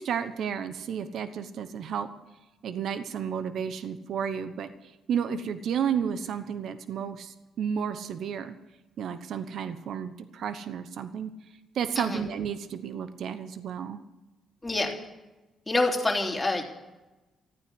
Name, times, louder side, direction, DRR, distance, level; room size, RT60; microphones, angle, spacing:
voice 1, 0.0-2.1 2.6-4.7 5.1-8.6 9.0-11.3 11.7-14.0, right 7 dB, 70° right, 11 dB, 1.0 m, -32 dB
voice 2, 14.6-15.0 15.7-16.6, left 2 dB, 10° left, -1 dB, 3.4 m, -26 dB
14.5 x 9.4 x 8.1 m, 1.1 s
cardioid pair, 90°, 0 cm